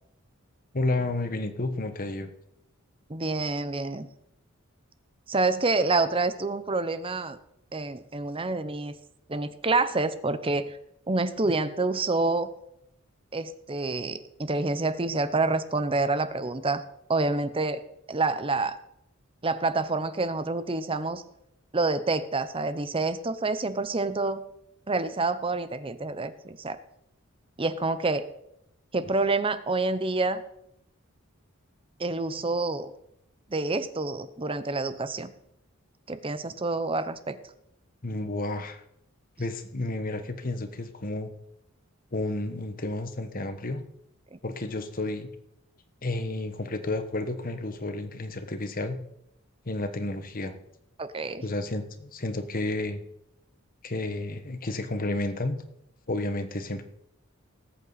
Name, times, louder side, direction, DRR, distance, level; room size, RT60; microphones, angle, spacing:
voice 1, 0.7-2.3 38.0-38.8 39.4-41.3 42.1-43.8 44.4-45.3 46.0-49.0 49.6-50.5 51.4-53.0 53.8-55.6 56.1-56.8, left 2 dB, 45° left, 9 dB, 1.3 m, -31 dB
voice 2, 3.1-4.1 5.3-7.4 7.7-8.9 9.3-10.8 11.1-12.5 13.3-16.8 17.1-17.8 18.1-18.8 19.4-21.2 21.7-24.4 24.9-26.8 27.6-28.3 28.9-30.4 32.0-32.9 33.5-35.3 36.1-37.4 44.3-44.4 51.0-51.4, right 3 dB, 25° right, 12 dB, 0.8 m, -27 dB
19.0 x 8.4 x 4.1 m, 0.78 s
head